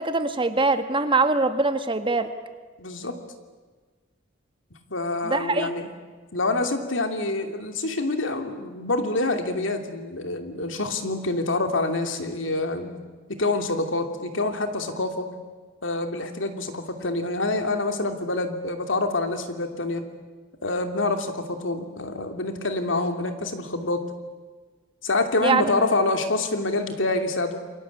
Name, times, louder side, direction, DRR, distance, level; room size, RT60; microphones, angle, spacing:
voice 1, 0.0-2.3 5.2-5.7 25.4-25.7, right 3 dB, 25° right, 9 dB, 1.6 m, -23 dB
voice 2, 2.8-3.2 4.9-5.9 6.3-12.9 13.3-15.3 15.8-20.0 20.6-24.0 25.0-27.6, left 2 dB, 80° left, 6 dB, 2.9 m, -26 dB
28.5 x 22.5 x 8.5 m, 1.4 s
head